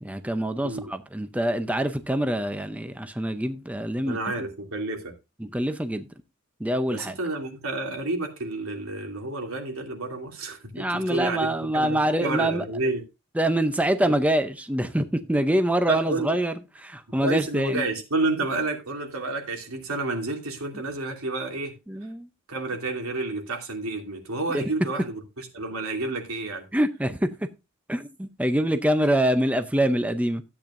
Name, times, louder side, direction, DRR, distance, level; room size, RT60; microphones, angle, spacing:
voice 1, 0.0-4.2 5.4-6.0 6.6-7.1 10.7-12.6 13.4-16.5 16.8-17.8 21.9-22.3 24.5-24.6 26.7-27.3 27.9-30.4, right 1 dB, 5° right, 0.6 m, -25 dB
voice 2, 4.1-5.1 6.9-13.0 14.0-14.2 15.9-16.4 17.2-21.7 22.5-26.7, right 2 dB, 90° right, 2.8 m, -30 dB
13.5 x 8.7 x 2.6 m
head